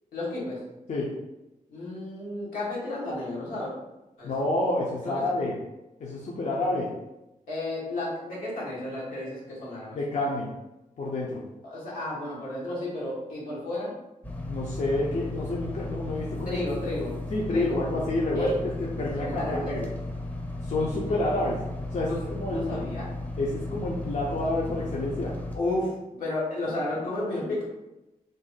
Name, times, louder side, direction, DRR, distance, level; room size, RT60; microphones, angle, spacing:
voice 1, 0.1-0.6 1.7-3.7 4.2-4.3 5.0-5.3 7.5-10.0 11.6-13.9 16.4-17.2 17.5-17.8 18.3-18.6 19.2-19.8 21.1-21.2 22.1-22.2 22.5-23.1 25.5-27.7, left 1 dB, 90° left, -6 dB, 1.1 m, -32 dB
voice 2, 4.2-5.5 6.0-6.9 9.9-10.5 11.0-11.4 14.5-16.6 17.3-18.5 19.0-19.9 20.6-21.6 21.9-22.8 23.4-25.3, left 2 dB, 60° left, -4 dB, 0.6 m, -28 dB
sound 1, 14.2-25.6, left 1 dB, 10° left, 0.6 m, -35 dB
2.6 x 2.1 x 3.8 m, 0.97 s
cardioid pair, 70°, 14 cm